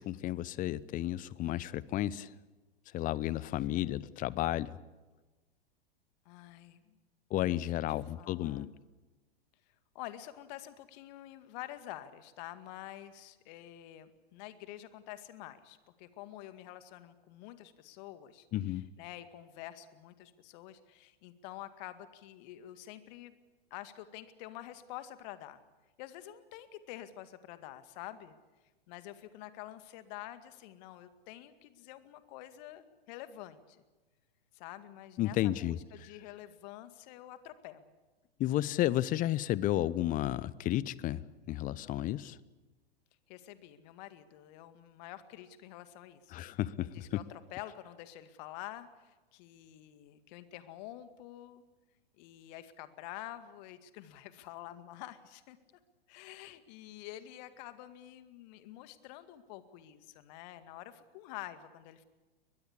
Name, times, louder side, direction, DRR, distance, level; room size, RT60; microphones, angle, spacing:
voice 1, 0.0-2.3 2.9-4.7 7.3-8.7 18.5-18.9 35.2-35.8 38.4-41.2 41.5-42.4 46.3-46.9, left 14 dB, 25° left, 21 dB, 0.8 m, -32 dB
voice 2, 6.3-7.0 7.5-7.7 8.2-8.7 9.9-23.4 23.7-25.6 26.0-28.4 28.9-33.8 34.5-37.9 43.3-51.6 52.2-55.6 56.1-62.0, left 13 dB, 45° left, 11 dB, 2.1 m, -48 dB
22.5 x 21.0 x 8.5 m, 1.2 s
figure-of-eight pair, 100°, 30 cm